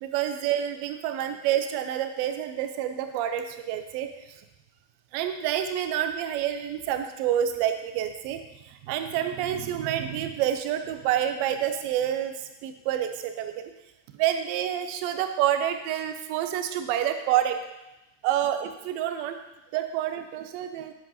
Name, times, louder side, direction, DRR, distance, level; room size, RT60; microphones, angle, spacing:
voice 1, 0.0-4.1 5.1-13.7 14.2-17.6 18.2-19.4 19.7-20.9, right 10 dB, 45° right, 7 dB, 0.7 m, -28 dB
8.5 x 7.5 x 2.8 m, 0.96 s
figure-of-eight pair, 90°, 0 cm